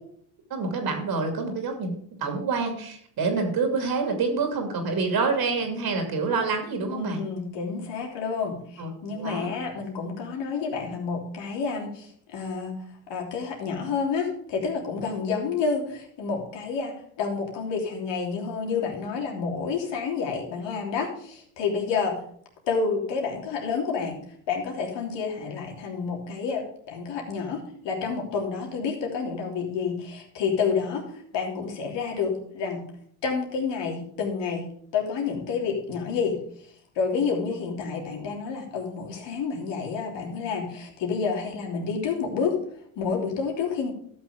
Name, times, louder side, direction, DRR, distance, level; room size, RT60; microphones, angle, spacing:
voice 1, 0.5-7.2 8.8-9.5, right 4 dB, 50° right, 4 dB, 2.6 m, -27 dB
voice 2, 6.9-8.5 9.0-11.9 12.3-12.7 13.1-14.2 14.5-15.8 16.2-16.9 17.2-21.1 21.6-22.1 22.7-24.1 24.5-26.6 26.9-27.6 27.8-30.0 30.4-31.0 31.3-32.8 33.2-34.6 34.9-36.4 37.0-40.7 41.0-42.5 43.0-43.9, left 5 dB, 65° left, 0 dB, 3.2 m, -29 dB
12.5 x 6.4 x 5.0 m, 0.63 s
supercardioid pair, 85°, 46 cm